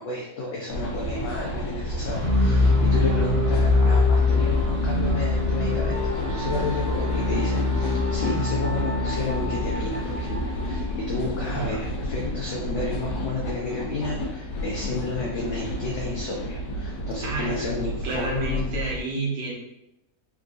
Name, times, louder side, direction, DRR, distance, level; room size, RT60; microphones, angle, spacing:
voice 1, 0.0-18.6, left 3 dB, 70° left, -3 dB, 0.7 m, -31 dB
sound 1, 0.7-19.0, left 1 dB, 90° left, 1.3 m, -31 dB
sound 2, 2.0-12.1, left 2 dB, 40° right, 0.7 m, -24 dB
Wind instrument woodwind instrument, 5.9-10.9, left 2 dB, 70° right, 0.9 m, -38 dB
voice 2, 11.5-11.8 17.2-17.7 18.0-19.5, right 4 dB, 90° right, -2 dB, 1.4 m, -30 dB
3.6 x 2.5 x 2.3 m, 0.86 s
omnidirectional pair, 1.8 m